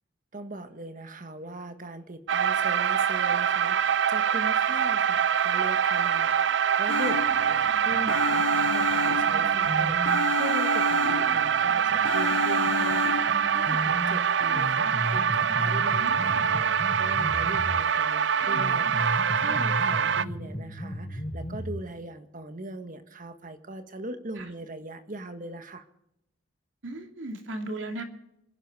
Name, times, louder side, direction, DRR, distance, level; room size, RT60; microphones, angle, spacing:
voice 1, 0.3-25.9, right 1 dB, 45° right, 9 dB, 1.6 m, -40 dB
sound 1, 2.3-20.2, right 7 dB, 65° right, 0.5 m, -24 dB
sound 2, 6.9-7.7 8.1-9.7 10.1-11.6 12.1-13.5, left 9 dB, 80° left, 1.0 m, -32 dB
sound 3, 6.9-10.2 10.9-17.9 18.4-21.9, equal, 50° left, 6.0 m, -37 dB
voice 2, 15.9-16.4 24.4-24.5 26.8-28.0, right 2 dB, 90° right, 4 dB, 2.7 m, -36 dB
26.5 x 11.0 x 4.8 m, 0.83 s
head